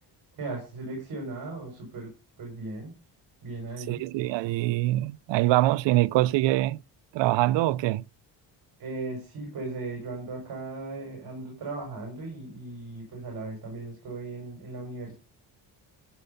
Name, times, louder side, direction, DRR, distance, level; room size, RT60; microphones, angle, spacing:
voice 1, 0.3-2.1 2.4-2.9 3.4-4.0 8.8-15.1, right 3 dB, 55° right, 5.8 m, -37 dB
voice 2, 3.9-6.8 7.1-8.0, right 16 dB, 85° right, 0.5 m, -24 dB
14.0 x 6.6 x 5.6 m
cardioid pair, 155°, 42 cm